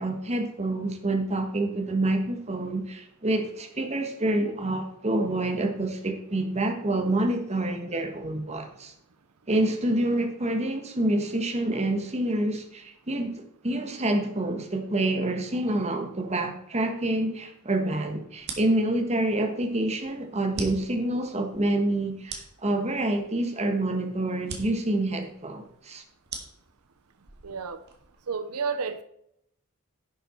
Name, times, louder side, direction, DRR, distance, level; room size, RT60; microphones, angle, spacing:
voice 1, 0.0-8.9 9.5-26.0, right 1 dB, 30° right, 5 dB, 1.4 m, -27 dB
sound 1, 18.4-28.2, right 4 dB, 50° right, 1.8 m, -43 dB
voice 2, 27.4-27.8 28.3-29.0, right 5 dB, 85° right, 11 dB, 0.7 m, -31 dB
11.0 x 6.8 x 4.4 m, 0.73 s
head